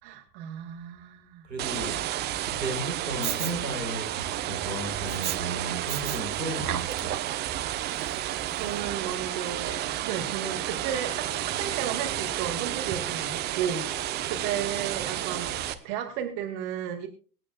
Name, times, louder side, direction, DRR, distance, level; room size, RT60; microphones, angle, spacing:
voice 1, 0.0-1.5 8.1-17.1, right 9 dB, 35° right, 2.2 m, -34 dB
voice 2, 1.4-2.1 2.4-7.2, right 2 dB, 80° right, 4.9 m, -34 dB
sound 1, 1.6-15.7, right 13 dB, 20° right, 0.9 m, -31 dB
Respiratory sounds, 3.2-3.5 5.1-5.4 5.9-6.2 6.6-7.4 8.0-8.1, right 10 dB, 60° right, 1.2 m, -33 dB
sound 2, 10.4-15.4, equal, 5° left, 6.5 m, -46 dB
25.0 x 8.7 x 2.3 m
figure-of-eight pair, 105°, 50 cm